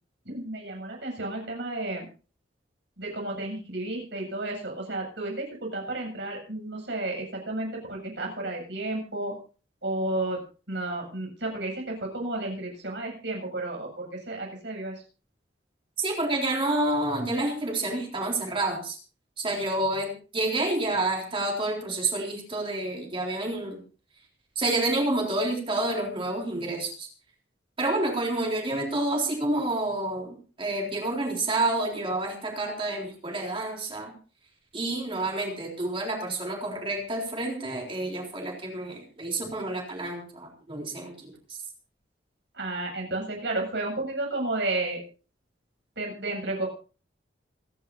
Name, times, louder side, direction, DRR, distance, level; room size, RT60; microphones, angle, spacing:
voice 1, 0.2-2.1 3.0-9.4 9.8-10.4 10.7-15.0 42.5-45.0 46.0-46.7, right 2 dB, 70° right, 1 dB, 7.8 m, -32 dB
voice 2, 16.0-19.0 19.4-23.8 24.6-27.1 27.8-34.1 34.7-41.3, right 2 dB, 30° right, 0 dB, 3.9 m, -29 dB
27.5 x 10.5 x 2.8 m, 0.37 s
head